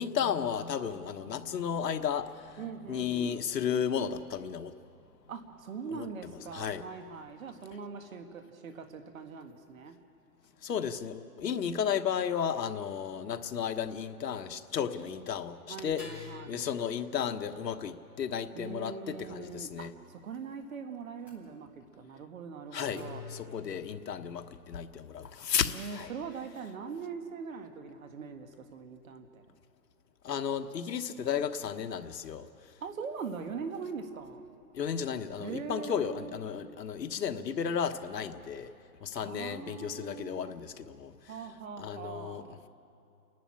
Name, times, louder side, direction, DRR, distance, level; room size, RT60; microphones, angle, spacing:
voice 1, 0.0-4.7 5.9-6.1 6.5-6.8 10.6-16.0 16.5-19.9 22.7-26.1 30.2-32.5 34.7-38.7 39.0-41.1 41.8-42.4, left 8 dB, 85° left, 7 dB, 1.3 m, -33 dB
voice 2, 2.6-3.4 5.3-10.0 15.7-16.7 18.5-23.2 25.7-29.4 32.8-34.4 35.4-36.4 39.2-40.5 41.3-42.6, right 5 dB, 55° right, 6 dB, 1.8 m, -42 dB
sound 1, 16.0-19.7 21.2-21.3 22.9-24.5, left 5 dB, 5° right, 2.7 m, -50 dB
29.0 x 11.0 x 8.7 m, 2.5 s
hypercardioid pair, 170°, 48 cm